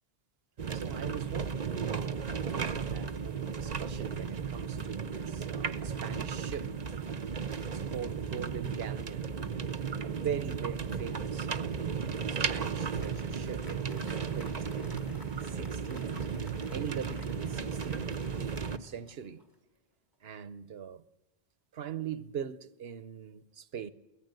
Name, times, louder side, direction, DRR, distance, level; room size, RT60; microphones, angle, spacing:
sound 1, 0.6-18.8, right 6 dB, 45° right, 0.9 m, -35 dB
voice 1, 0.7-6.7 7.6-9.4 10.0-11.7 12.3-16.2 16.7-19.4 20.2-21.0 21.7-23.9, right 8 dB, 75° right, 1.1 m, -42 dB
Applause, 12.1-19.7, left 1 dB, 20° left, 2.0 m, -55 dB
23.5 x 16.5 x 7.8 m
omnidirectional pair, 1.0 m